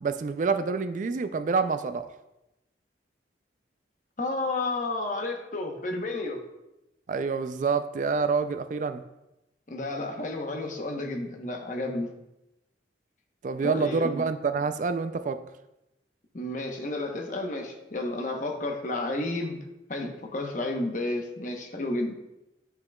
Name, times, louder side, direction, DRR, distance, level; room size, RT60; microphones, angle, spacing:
voice 1, 0.0-2.1 7.1-9.0 13.4-15.4, right 4 dB, 45° right, 10 dB, 0.3 m, -27 dB
voice 2, 4.2-6.4 9.7-12.1 13.6-14.2 16.3-19.6 19.9-22.2, left 2 dB, 45° left, 2 dB, 0.9 m, -31 dB
9.3 x 5.8 x 2.3 m, 0.91 s
head